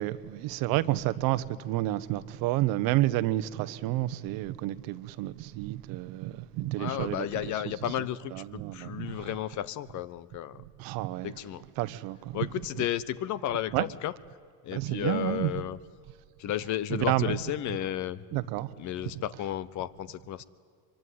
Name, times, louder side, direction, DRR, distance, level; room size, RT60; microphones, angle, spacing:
voice 1, 0.0-7.3 8.3-9.3 10.8-11.4 11.8-12.4 12.8-12.9 13.7-13.9 14.7-15.5 16.9-17.4 18.3-18.8, right 16 dB, 70° right, 1.1 m, -30 dB
voice 2, 6.8-10.6 11.2-11.6 12.3-14.1 14.6-15.8 16.4-18.4 18.8-20.4, left 12 dB, 50° left, 1.0 m, -33 dB
24.0 x 23.5 x 9.5 m
cardioid pair, 125°, 36 cm